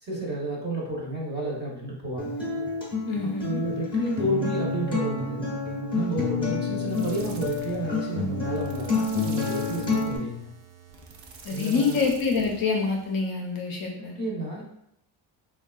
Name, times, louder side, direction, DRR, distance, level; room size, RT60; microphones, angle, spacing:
voice 1, 0.0-2.4 3.4-5.5 5.9-10.5 11.5-12.0 14.2-14.6, right 1 dB, 20° right, -4 dB, 0.7 m, -31 dB
Acoustic guitar, 2.2-10.2, left 3 dB, 10° left, 0.7 m, -29 dB
voice 2, 3.1-3.6 11.4-14.1, left 4 dB, 50° left, 0 dB, 0.5 m, -26 dB
sound 1, 6.9-13.2, right 5 dB, 70° right, 0.6 m, -46 dB
3.5 x 2.2 x 2.3 m, 0.77 s
cardioid pair, 140°, 47 cm